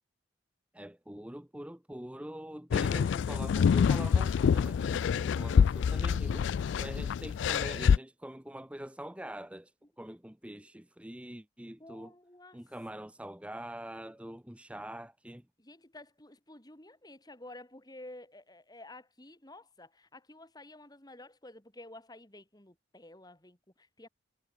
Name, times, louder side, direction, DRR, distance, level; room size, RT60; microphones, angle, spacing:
voice 1, 0.7-9.7 10.0-12.1 12.5-15.4, right 1 dB, 5° right, 0.9 m, -44 dB
sound 1, 2.7-8.0, left 7 dB, 70° left, 0.3 m, -26 dB
voice 2, 11.8-12.6 15.6-24.1, left 1 dB, 20° left, 2.8 m, -51 dB
head